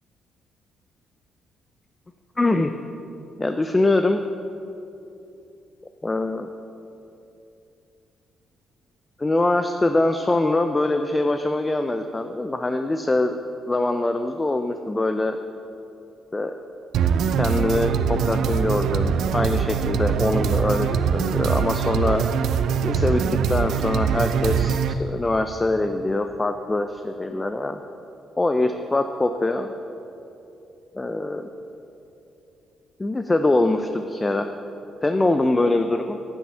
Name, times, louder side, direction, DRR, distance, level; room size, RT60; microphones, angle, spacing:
voice 1, 2.4-2.8 3.4-4.2 6.0-6.5 9.2-13.3 13.7-15.4 16.3-16.5 17.4-22.3 22.8-23.2 23.5-27.8 28.4-29.7 31.0-31.5 33.0-34.5 35.0-36.2, left 2 dB, 20° left, 7 dB, 0.4 m, -23 dB
sound 1, 16.9-24.9, right 7 dB, 75° right, 0.4 m, -23 dB
9.2 x 8.6 x 5.5 m, 2.8 s
cardioid pair, 90°, 0 cm